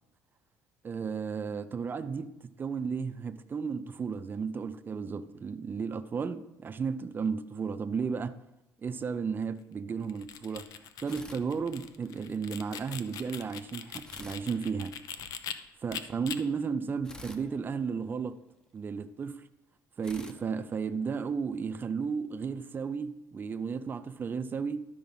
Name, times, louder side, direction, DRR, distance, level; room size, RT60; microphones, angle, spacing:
voice 1, 0.8-2.3 2.6-8.3 8.8-10.7 11.0-15.0 15.8-18.4 18.7-19.5 20.0-24.8, right 5 dB, 30° right, 0.6 m, -34 dB
sound 1, 10.0-15.5 15.9-16.4, left 9 dB, 65° left, 0.7 m, -41 dB
sound 2, 11.1-12.2 14.0-15.4 17.0-18.7 20.0-21.6, left 1 dB, 10° left, 0.8 m, -51 dB
12.0 x 5.1 x 5.5 m
cardioid pair, 110°, 7 cm